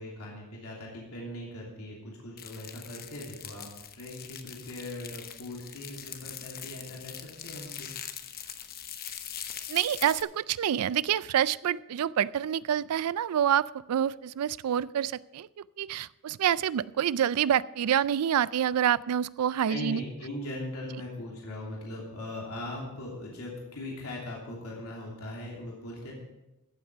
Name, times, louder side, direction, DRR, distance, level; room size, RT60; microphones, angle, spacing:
voice 1, 0.0-7.9 19.7-26.1, left 1 dB, 85° left, -3 dB, 3.0 m, -40 dB
sound 1, 2.4-10.2, left 9 dB, 45° left, 0.9 m, -42 dB
voice 2, 9.7-15.5 15.8-20.0, right 9 dB, 90° right, 20 dB, 0.4 m, -27 dB
14.5 x 7.9 x 5.5 m, 0.97 s
head